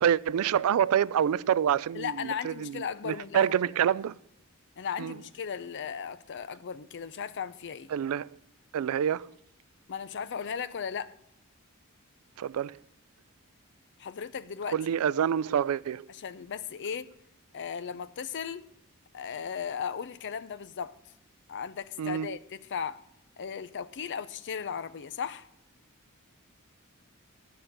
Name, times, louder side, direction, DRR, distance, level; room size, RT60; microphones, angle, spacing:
voice 1, 0.0-4.2 5.0-5.1 7.9-8.3 8.7-9.3 12.4-12.8 14.7-16.1 22.0-22.3, right 9 dB, 70° right, 0.3 m, -27 dB
voice 2, 1.9-3.5 4.8-7.9 9.9-11.1 14.0-14.8 16.1-17.1 17.5-18.7 19.1-21.0 21.5-23.0 23.4-25.5, left 7 dB, 55° left, 0.5 m, -36 dB
10.0 x 5.6 x 7.9 m
head